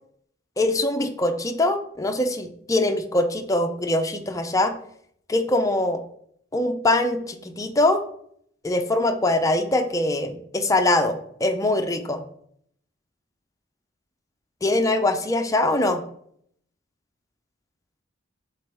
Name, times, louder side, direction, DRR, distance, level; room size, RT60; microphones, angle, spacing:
voice 1, 0.6-4.7 5.3-6.0 6.5-8.0 8.6-12.2 14.6-16.0, left 2 dB, 15° left, 6 dB, 0.5 m, -23 dB
7.4 x 3.8 x 3.5 m, 0.67 s
head